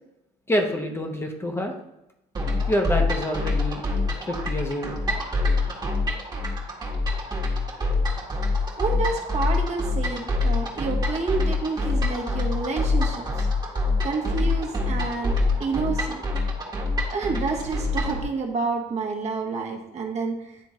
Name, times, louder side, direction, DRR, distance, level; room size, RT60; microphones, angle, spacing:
voice 1, 0.5-1.7 2.7-3.8 4.3-5.0 12.6-12.7, equal, 15° left, 3 dB, 0.9 m, -27 dB
sound 1, 2.3-18.2, left 2 dB, 25° right, 1.4 m, -26 dB
voice 2, 8.8-13.5 14.0-15.3 15.6-16.2 17.1-20.4, right 4 dB, 40° right, 1 dB, 1.2 m, -29 dB
10.5 x 3.4 x 3.1 m, 0.91 s
cardioid pair, 110°, 17 cm